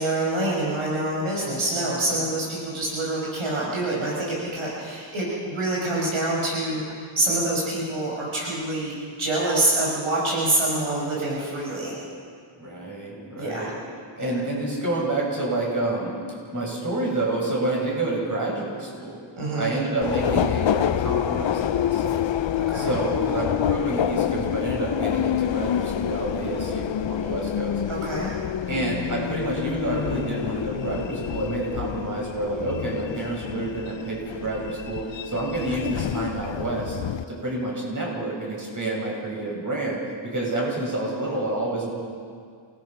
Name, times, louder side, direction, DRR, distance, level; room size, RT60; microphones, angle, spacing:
voice 1, 0.0-8.9 9.2-12.0 13.4-13.7 14.2-14.3 19.4-19.7 22.6-22.9 27.9-28.3, right 2 dB, 80° right, -5 dB, 5.9 m, -26 dB
voice 2, 12.6-13.7 14.2-16.1 16.5-19.2 19.6-22.2 22.7-27.8 28.7-37.0 37.3-41.9, right 2 dB, 40° right, -3 dB, 7.0 m, -28 dB
Subway metro underground, 20.0-37.3, left 10 dB, 65° left, 0.6 m, -27 dB
28.0 x 19.5 x 6.0 m, 2.2 s
wide cardioid pair, 125°, 48 cm